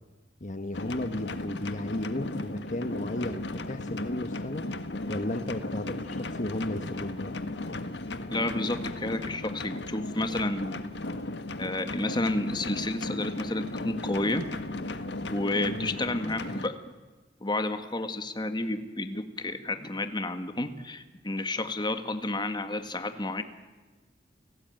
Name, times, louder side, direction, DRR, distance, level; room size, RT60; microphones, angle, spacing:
voice 1, 0.4-4.7 5.1-7.3 15.7-15.9, left 1 dB, 45° left, 8 dB, 1.4 m, -34 dB
sound 1, 0.7-16.7, left 2 dB, 85° left, 1.6 m, -36 dB
voice 2, 8.3-10.9 11.6-14.5 15.3-16.8 17.4-23.4, left 2 dB, 25° left, 8 dB, 1.8 m, -31 dB
29.5 x 17.5 x 9.2 m, 1.3 s
head